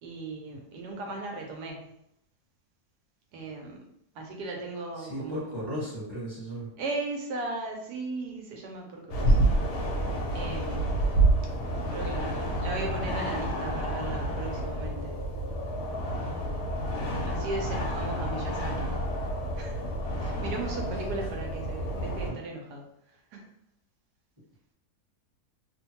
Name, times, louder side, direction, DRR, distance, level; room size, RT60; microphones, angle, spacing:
voice 1, 0.0-1.9 3.3-3.8 4.1-5.5 6.8-9.4 10.3-11.0 11.9-15.2 17.3-18.9 19.6-19.8 20.2-22.9 23.3-23.4, right 3 dB, 90° right, 1 dB, 1.2 m, -37 dB
voice 2, 5.0-6.7 21.1-21.3 22.3-22.4, equal, 15° left, -9 dB, 1.0 m, -36 dB
sound 1, 9.1-22.3, right 1 dB, 80° left, 1.2 m, -29 dB
2.9 x 2.1 x 2.8 m, 0.75 s
omnidirectional pair, 1.7 m